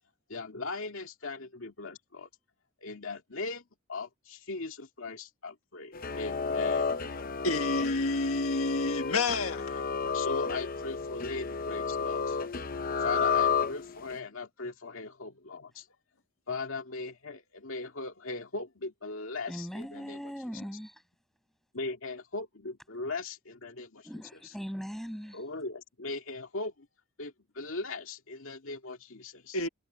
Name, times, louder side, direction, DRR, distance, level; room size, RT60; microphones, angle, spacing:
voice 1, 0.3-2.3 2.8-3.6 3.9-7.0 10.1-12.4 13.0-15.9 16.5-20.2 21.7-23.9 24.2-24.6 25.3-26.9 27.2-29.6, left 3 dB, 75° left, 2.1 m, -39 dB
sound 1, 5.9-14.2, left 5 dB, 40° left, 0.7 m, -31 dB
voice 2, 7.4-9.6 29.5-29.7, left 3 dB, 90° left, 1.7 m, -29 dB
voice 3, 19.5-20.9 24.1-25.4, equal, ahead, 7.7 m, -39 dB
head